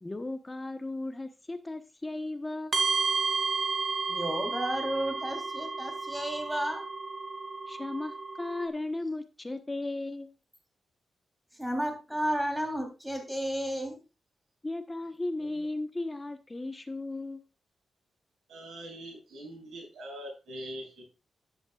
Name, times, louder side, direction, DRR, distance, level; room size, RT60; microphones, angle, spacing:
voice 1, 0.0-2.8 7.7-10.3 14.6-17.4, left 2 dB, 20° left, 7 dB, 1.1 m, -36 dB
sound 1, 2.7-8.7, right 4 dB, 40° right, 2.0 m, -32 dB
voice 2, 4.1-6.8 11.6-14.0, equal, 5° right, 3 dB, 3.5 m, -32 dB
voice 3, 18.5-21.0, equal, 85° right, 0 dB, 7.3 m, -43 dB
12.0 x 11.0 x 2.4 m, 0.29 s
cardioid pair, 85°, 0 cm